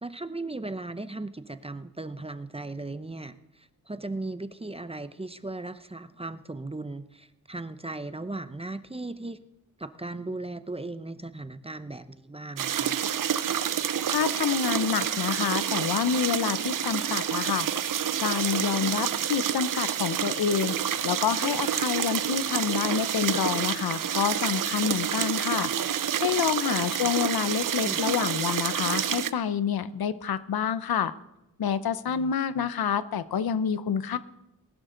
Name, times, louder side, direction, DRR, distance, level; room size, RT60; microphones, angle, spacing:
voice 1, 0.0-9.4 9.8-13.0 27.8-28.0, right 2 dB, 15° right, 11 dB, 0.7 m, -37 dB
sound 1, 12.6-29.3, right 9 dB, 60° right, 0.6 m, -28 dB
voice 2, 14.1-17.7 18.2-20.8 21.0-25.7 26.2-31.1 31.6-34.2, left 8 dB, 85° left, 15 dB, 0.7 m, -28 dB
19.5 x 11.5 x 3.8 m, 0.91 s
wide cardioid pair, 75°, 36 cm